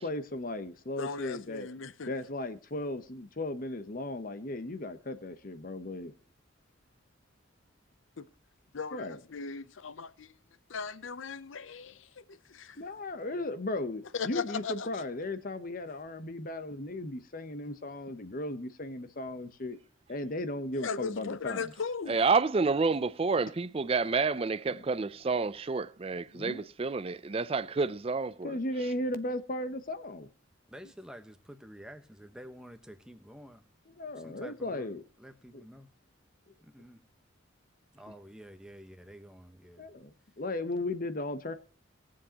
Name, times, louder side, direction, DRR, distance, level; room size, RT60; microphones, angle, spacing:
voice 1, 0.0-1.7 2.1-6.1 8.9-9.2 12.8-19.8 20.1-21.7 24.7-24.8 26.3-26.7 28.4-30.3 33.9-35.0 35.5-35.6 39.8-41.5, left 2 dB, 45° left, 0.9 m, -36 dB
voice 2, 1.0-2.1 8.2-8.3 8.7-10.3 10.7-12.8 14.1-15.0 20.8-22.2, left 5 dB, 75° left, 0.7 m, -38 dB
voice 3, 22.1-28.6, right 4 dB, 30° right, 0.4 m, -29 dB
voice 4, 30.7-33.7 34.0-34.9 35.2-35.9 36.6-37.0 37.9-39.9, equal, 5° right, 1.1 m, -50 dB
20.0 x 7.6 x 2.9 m
head